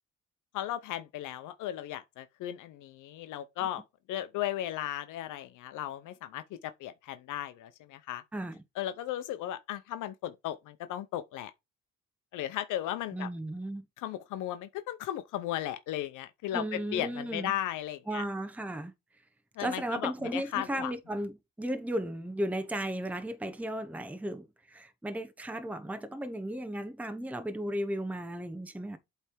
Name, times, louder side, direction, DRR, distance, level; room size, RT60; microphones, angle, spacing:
voice 1, 0.5-3.8 4.1-8.2 8.8-11.5 12.3-13.3 14.0-18.2 19.6-20.9, left 12 dB, 90° left, 0.7 m, -36 dB
voice 2, 13.1-13.9 16.5-17.5 18.1-18.9 19.6-29.0, right 1 dB, 5° right, 0.9 m, -35 dB
8.1 x 3.4 x 4.5 m
cardioid pair, 90°, 30 cm